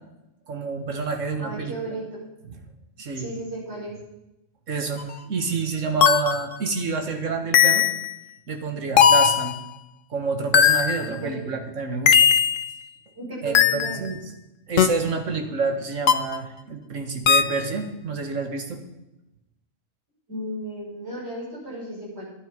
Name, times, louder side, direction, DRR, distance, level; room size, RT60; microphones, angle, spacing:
voice 1, 0.5-2.0 2.5-2.6 3.0-3.3 4.7-7.9 8.5-9.6 10.1-12.3 13.4-14.2 14.7-18.8, right 4 dB, 80° right, 5 dB, 2.0 m, -28 dB
voice 2, 1.4-2.3 3.1-4.0 11.0-11.5 13.2-14.0 20.3-22.3, right 1 dB, 60° right, -6 dB, 6.0 m, -35 dB
sound 1, 5.0-5.1 6.0-6.4 7.5-8.1 9.0-9.5 10.5-11.1 12.1-12.7 13.5-14.0 14.8-14.9 16.1-16.4 17.3-17.6, left 8 dB, 80° left, 1.2 m, -17 dB
12.0 x 12.0 x 5.3 m, 0.89 s
omnidirectional pair, 1.3 m